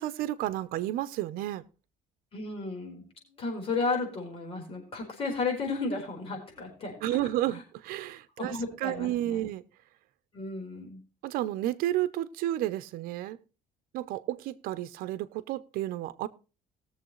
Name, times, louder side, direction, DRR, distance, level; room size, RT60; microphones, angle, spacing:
voice 1, 0.0-1.6 7.0-9.6 11.2-13.4 13.9-16.3, right 14 dB, 80° right, 0.7 m, -31 dB
voice 2, 2.3-3.0 3.3-7.2 7.5-7.6 8.4-9.5 10.3-11.0, left 3 dB, 40° left, 4.5 m, -33 dB
19.5 x 7.2 x 3.1 m
cardioid pair, 125°, 15 cm